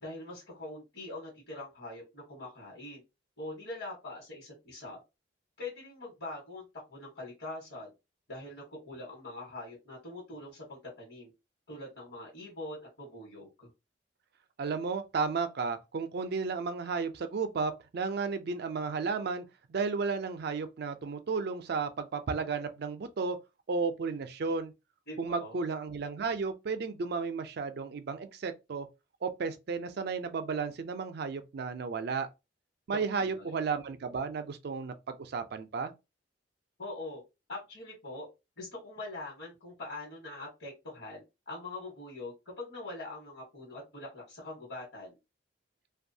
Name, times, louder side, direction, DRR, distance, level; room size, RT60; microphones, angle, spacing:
voice 1, 0.0-3.0 3.4-5.0 5.6-7.9 8.3-11.3 11.7-13.7 25.1-25.6 32.9-33.5 36.8-37.2 37.5-38.3 38.6-45.2, left 2 dB, 60° left, 1.2 m, -43 dB
voice 2, 14.6-23.4 23.7-24.7 25.2-28.9 29.2-32.3 32.9-35.9, right 4 dB, 60° right, 0.4 m, -33 dB
2.6 x 2.3 x 2.6 m
head